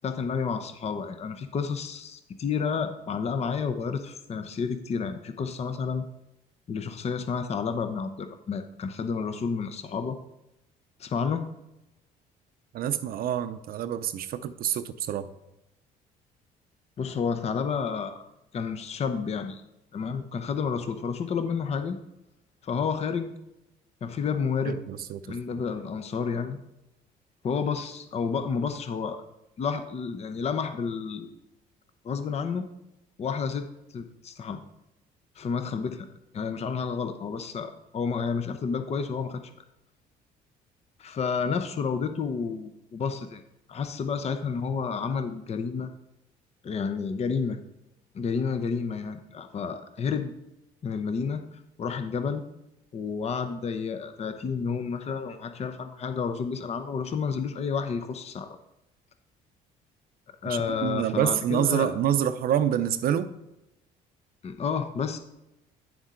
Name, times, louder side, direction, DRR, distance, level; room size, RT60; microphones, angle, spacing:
voice 1, 0.0-6.1 6.7-10.2 11.0-11.5 17.0-18.3 18.5-19.6 19.9-22.0 22.6-23.3 24.0-24.8 25.3-26.6 27.4-29.2 29.6-31.3 32.0-32.7 33.2-34.6 35.4-36.1 36.3-39.4 41.0-43.4 43.7-45.9 46.6-47.6 48.1-50.3 50.8-52.4 52.9-58.6 60.4-61.9 64.4-65.2, left 6 dB, 40° left, 8 dB, 0.8 m, -30 dB
voice 2, 12.7-15.3 24.6-25.4 60.4-63.3, right 10 dB, 60° right, 11 dB, 0.6 m, -27 dB
9.4 x 7.1 x 3.8 m, 0.91 s
cardioid pair, 110°, 17 cm